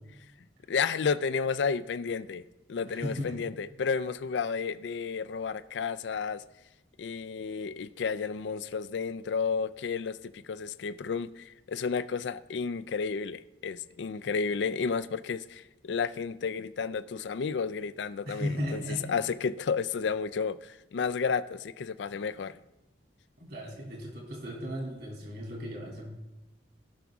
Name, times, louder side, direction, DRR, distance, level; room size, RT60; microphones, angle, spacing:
voice 1, 0.7-6.4 7.0-18.8 19.1-22.6, left 5 dB, 75° left, 0.4 m, -32 dB
voice 2, 2.9-3.4 18.2-19.1 23.4-26.1, equal, 60° right, 3.0 m, -36 dB
17.0 x 6.0 x 3.6 m
head